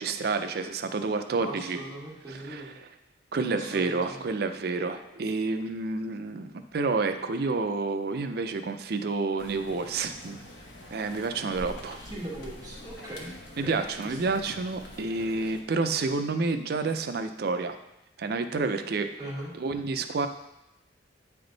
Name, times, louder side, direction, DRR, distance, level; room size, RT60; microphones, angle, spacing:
voice 1, 0.0-1.8 2.3-2.6 3.3-10.4 10.9-12.0 13.6-17.8 18.2-19.1 19.6-20.3, right 3 dB, 60° right, 8 dB, 0.4 m, -29 dB
voice 2, 1.4-2.7 3.5-4.3 12.0-13.3 13.6-14.4 19.2-19.5, right 1 dB, 20° right, -5 dB, 1.5 m, -40 dB
sound 1, 9.4-15.6, left 1 dB, 75° left, 0.9 m, -45 dB
8.8 x 3.5 x 3.9 m, 0.87 s
head